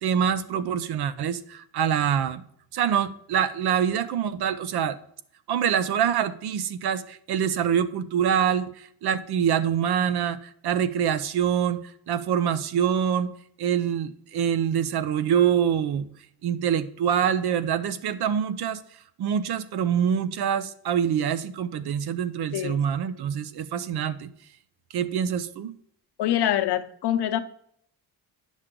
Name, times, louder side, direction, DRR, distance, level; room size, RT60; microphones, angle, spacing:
voice 1, 0.0-2.4 2.7-5.0 5.5-13.3 13.6-16.1 16.4-18.8 19.2-24.3 24.9-25.7, right 8 dB, 75° right, 13 dB, 0.8 m, -25 dB
voice 2, 22.5-22.8 26.2-27.4, left 11 dB, 80° left, 9 dB, 0.9 m, -25 dB
9.8 x 6.3 x 3.7 m, 0.67 s
cardioid pair, 155°, 39 cm